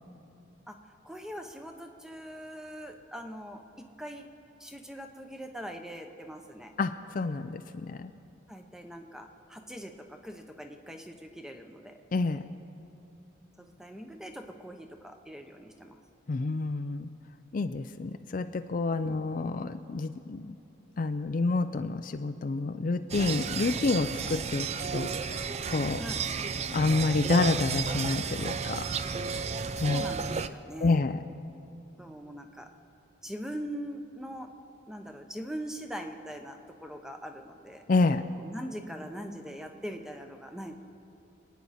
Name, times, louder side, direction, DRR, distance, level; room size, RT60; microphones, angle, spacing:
voice 1, 1.0-4.3 4.6-6.7 8.5-12.0 13.6-16.0 19.1-19.5 26.0-26.2 29.8-31.0 32.0-32.7 33.2-34.5 34.9-37.8 38.4-40.7, equal, 5° right, 5 dB, 0.8 m, -42 dB
voice 2, 6.8-8.1 12.1-12.4 16.3-17.1 17.5-20.5 21.0-26.0 26.7-28.9 29.8-30.0 30.8-31.2 37.9-38.2, left 3 dB, 45° left, 9 dB, 0.4 m, -28 dB
sound 1, 23.1-30.5, right 5 dB, 35° right, 0.4 m, -32 dB
26.5 x 9.3 x 4.2 m, 2.9 s
head